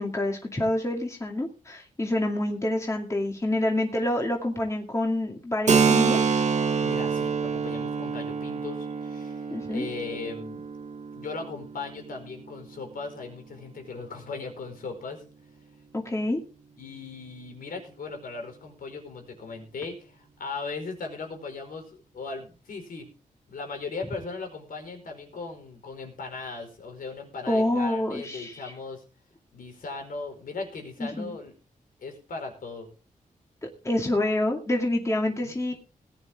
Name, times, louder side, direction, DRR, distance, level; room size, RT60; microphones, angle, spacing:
voice 1, 0.0-6.4 9.5-9.9 15.9-16.4 27.5-28.7 31.0-31.3 33.6-35.7, left 1 dB, 20° left, 1 dB, 2.4 m, -27 dB
Keyboard (musical), 5.7-13.0, right 5 dB, 55° right, 1.3 m, -27 dB
voice 2, 6.8-10.6 11.1-15.2 16.8-23.1 23.5-29.0 29.5-31.5 32.0-32.9 35.4-35.7, left 4 dB, 80° left, 5 dB, 4.8 m, -38 dB
19.0 x 10.0 x 3.6 m, 0.34 s
wide cardioid pair, 145°, 14 cm